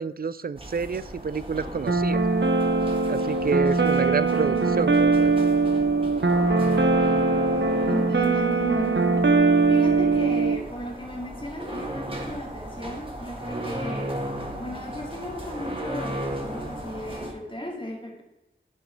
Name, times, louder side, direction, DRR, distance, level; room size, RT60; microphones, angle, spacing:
voice 1, 0.0-2.2 3.1-5.3, right 5 dB, 45° right, 16 dB, 0.4 m, -28 dB
sound 1, 0.5-17.3, right 1 dB, 25° right, 1.7 m, -36 dB
sound 2, 1.9-10.6, right 3 dB, 60° right, 0.8 m, -21 dB
voice 2, 7.9-9.0 9.7-14.2 14.6-18.2, equal, 25° left, -1 dB, 2.2 m, -35 dB
10.5 x 4.6 x 4.5 m, 0.99 s
wide cardioid pair, 45°, 21 cm